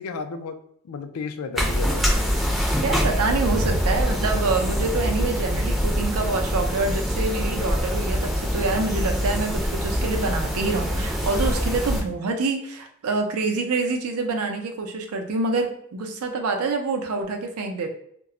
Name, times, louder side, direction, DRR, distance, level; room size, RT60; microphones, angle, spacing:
voice 1, 0.0-2.4, left 4 dB, 75° left, 8 dB, 0.3 m, -34 dB
sound 1, 1.6-12.0, equal, ahead, 0.4 m, -24 dB
voice 2, 2.8-17.9, right 3 dB, 85° right, 4 dB, 0.5 m, -26 dB
2.1 x 2.0 x 3.6 m, 0.68 s
head